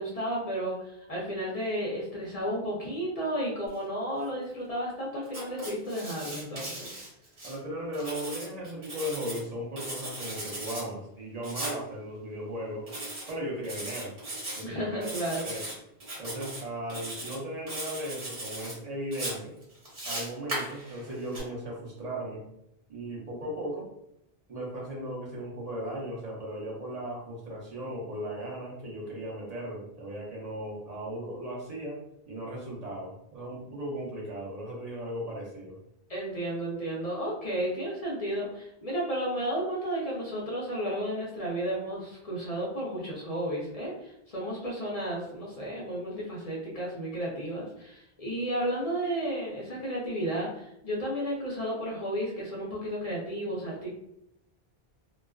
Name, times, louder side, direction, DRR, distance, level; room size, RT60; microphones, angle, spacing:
voice 1, 0.0-6.9 14.6-15.5 36.1-53.9, right 1 dB, 45° left, -4 dB, 0.6 m, -33 dB
Writing, 5.3-7.6 7.9-9.4 9.8-10.8 11.4-11.8 12.9-13.3 13.6-14.6 15.0-15.7 16.0-16.6 16.9-17.4 17.7-18.7 19.1-21.4, right 1 dB, 60° right, 1.3 m, -38 dB
voice 2, 7.4-12.8 13.3-14.1 14.6-15.1 15.4-15.6 16.2-19.5 20.0-22.4 22.9-23.9 24.5-32.0 32.3-35.8, equal, 45° right, -4 dB, 0.8 m, -37 dB
2.3 x 2.3 x 2.2 m, 0.79 s
omnidirectional pair, 1.1 m